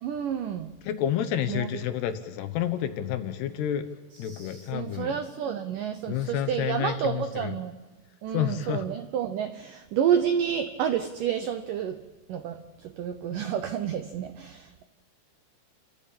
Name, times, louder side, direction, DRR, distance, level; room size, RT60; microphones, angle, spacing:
voice 1, 0.0-0.7 1.5-1.7 4.1-7.8 8.2-12.0 12.3-14.8, right 8 dB, 80° right, 8 dB, 1.9 m, -30 dB
voice 2, 0.9-3.9 4.2-5.1 6.1-7.5 8.3-8.8, left 10 dB, 75° left, 10 dB, 3.1 m, -29 dB
29.5 x 14.0 x 8.8 m, 1.3 s
omnidirectional pair, 5.0 m